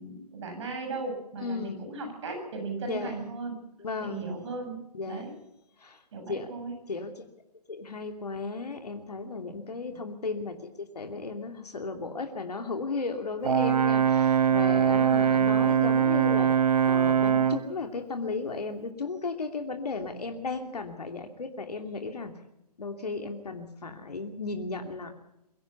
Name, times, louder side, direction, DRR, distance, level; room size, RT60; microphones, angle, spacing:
voice 1, 0.0-3.5 4.0-4.8 5.1-5.3 6.1-6.8, right 3 dB, 45° right, 4 dB, 7.7 m, -36 dB
voice 2, 1.4-1.8 2.8-3.2 3.8-4.3 4.9-5.2 5.8-6.0 6.3-6.5 6.9-7.3 7.7-16.5 16.8-22.3 22.8-25.1, left 3 dB, 70° left, 5 dB, 2.8 m, -35 dB
Brass instrument, 13.4-17.7, right 8 dB, 65° right, 0.9 m, -22 dB
24.0 x 15.5 x 7.1 m, 0.85 s
figure-of-eight pair, 140°, 21 cm